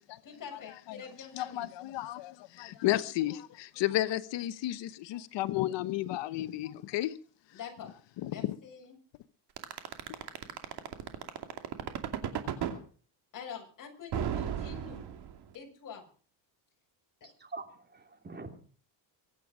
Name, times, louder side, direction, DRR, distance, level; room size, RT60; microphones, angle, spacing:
voice 1, 0.2-1.7 7.5-7.9 8.3-9.0 13.3-15.1 15.5-16.0, left 7 dB, 45° left, 6.9 m, -45 dB
voice 2, 1.3-7.2 8.2-8.5, left 15 dB, 75° left, 1.1 m, -32 dB
sound 1, 9.6-12.8 14.1-15.5, right 9 dB, 60° right, 2.6 m, -34 dB
voice 3, 17.2-18.6, right 3 dB, 25° right, 3.1 m, -45 dB
23.5 x 9.0 x 6.2 m
cardioid pair, 125°, 44 cm